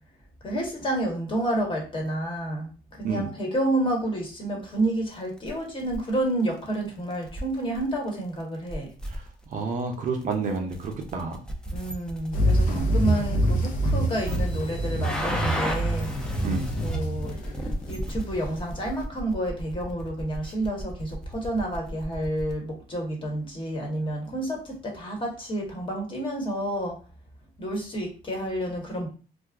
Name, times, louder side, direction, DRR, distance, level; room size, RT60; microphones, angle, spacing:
voice 1, 0.4-8.9 11.7-16.1 16.8-17.4 17.9-27.0 27.6-29.1, right 1 dB, 30° left, 0 dB, 1.2 m, -29 dB
sound 1, 5.1-5.5 5.8-6.1 6.7-6.8 7.1-7.8 8.1-8.2 8.4-8.5 8.7-13.9 14.2-22.5, equal, 5° left, 0.5 m, -35 dB
voice 2, 9.5-11.4 12.7-12.9 16.4-16.6, right 4 dB, 50° right, 3 dB, 0.6 m, -29 dB
sound 2, 12.3-19.0, right 1 dB, 50° left, 0.7 m, -26 dB
2.5 x 2.3 x 3.4 m, 0.36 s
cardioid pair, 110°, 17 cm